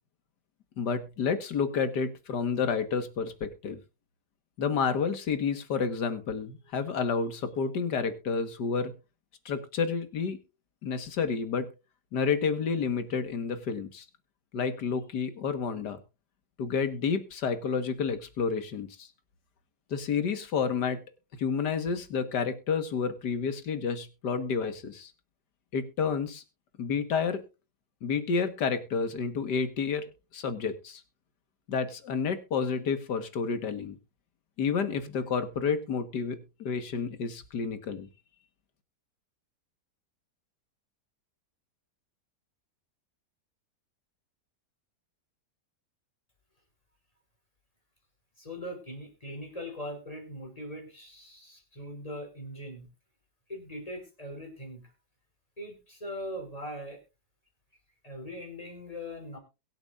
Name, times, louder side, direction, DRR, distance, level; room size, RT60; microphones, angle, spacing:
voice 1, 0.8-3.8 4.6-8.9 9.5-10.4 10.8-11.7 12.1-14.1 14.5-16.0 16.6-19.1 19.9-21.0 21.4-25.1 25.7-26.4 26.8-27.4 28.0-30.0 30.3-31.0 31.7-34.0 34.6-38.1, left 5 dB, 80° left, 10 dB, 2.1 m, -30 dB
voice 2, 48.4-52.9 53.5-54.8 55.6-57.0 58.0-59.4, equal, 20° left, 2 dB, 4.6 m, -40 dB
22.5 x 8.0 x 2.5 m, 0.29 s
omnidirectional pair, 1.8 m